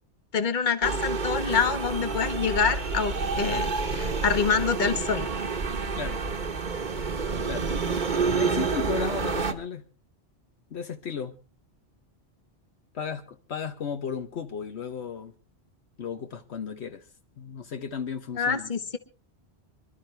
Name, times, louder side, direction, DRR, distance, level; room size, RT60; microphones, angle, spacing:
voice 1, 0.3-5.3 18.4-19.0, left 6 dB, 45° left, 1.3 m, -26 dB
sound 1, 0.8-9.5, right 4 dB, 45° right, 1.2 m, -28 dB
voice 2, 8.4-9.9 10.7-11.3 12.9-15.3 16.0-17.1 17.4-18.7, left 6 dB, 75° left, 1.2 m, -34 dB
26.0 x 12.0 x 3.3 m
omnidirectional pair, 1.1 m